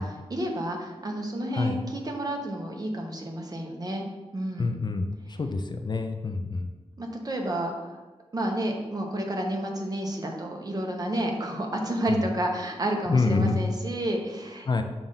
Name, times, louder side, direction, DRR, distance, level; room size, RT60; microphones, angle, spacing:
voice 1, 0.0-4.0 4.3-4.7 7.0-8.0 8.3-14.7, right 1 dB, 35° right, 1 dB, 0.9 m, -30 dB
voice 2, 4.6-6.7 12.1-12.2 13.1-13.6 14.7-14.8, left 3 dB, 40° left, 5 dB, 0.4 m, -27 dB
7.1 x 2.5 x 5.6 m, 1.2 s
wide cardioid pair, 120°, 11 cm